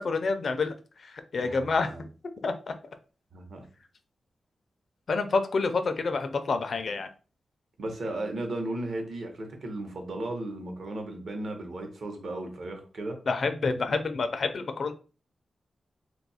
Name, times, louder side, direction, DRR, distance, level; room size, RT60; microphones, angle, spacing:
voice 1, 0.0-1.9 2.4-2.7 5.1-7.1 13.3-14.9, left 4 dB, 50° left, 0.4 m, -28 dB
voice 2, 1.4-2.1 3.3-3.6 7.8-13.2, right 2 dB, 55° right, 0.8 m, -35 dB
2.6 x 2.3 x 4.1 m
wide cardioid pair, 180°, 0 cm